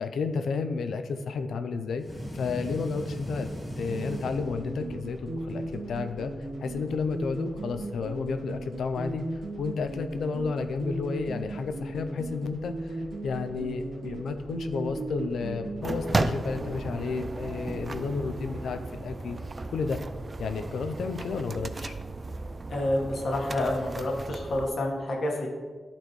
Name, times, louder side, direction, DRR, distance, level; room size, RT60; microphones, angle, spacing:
voice 1, 0.0-2.0 2.3-3.5 3.8-19.4 19.7-20.0 20.4-22.0, left 4 dB, 85° left, 9 dB, 0.5 m, -32 dB
sound 1, 2.0-5.1, equal, 5° left, 2.1 m, -38 dB
sound 2, 3.9-16.8, right 2 dB, 75° right, 1.9 m, -37 dB
sound 3, 15.8-24.7, right 2 dB, 30° right, 0.4 m, -34 dB
voice 2, 22.7-25.5, left 1 dB, 60° left, 0 dB, 1.4 m, -28 dB
11.5 x 4.3 x 3.1 m, 1.5 s
wide cardioid pair, 115°, 0 cm